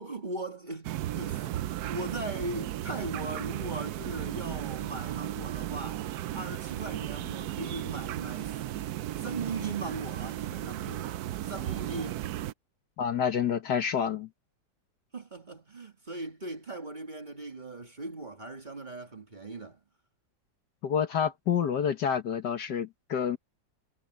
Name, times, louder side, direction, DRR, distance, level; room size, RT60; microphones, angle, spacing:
voice 1, 0.0-6.0 6.3-8.6 9.2-11.1 11.4-12.2 15.1-19.8, right 2 dB, 25° right, 2.0 m, -39 dB
sound 1, 0.8-12.5, right 13 dB, 70° right, 0.9 m, -35 dB
voice 2, 13.0-14.3 20.8-23.4, left 7 dB, 60° left, 1.7 m, -28 dB
omnidirectional pair, 2.1 m